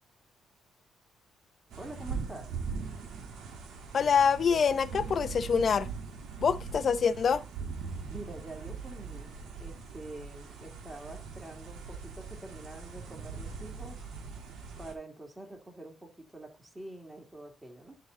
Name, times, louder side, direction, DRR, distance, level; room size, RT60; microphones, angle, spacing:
sound 1, 1.7-14.9, right 5 dB, 80° right, 2.4 m, -41 dB
voice 1, 1.8-2.6 8.1-14.0 14.8-17.9, right 2 dB, 15° right, 2.6 m, -46 dB
voice 2, 3.9-5.9 6.4-7.4, left 6 dB, 50° left, 0.6 m, -25 dB
11.0 x 4.0 x 3.9 m
cardioid pair, 90°, 0 cm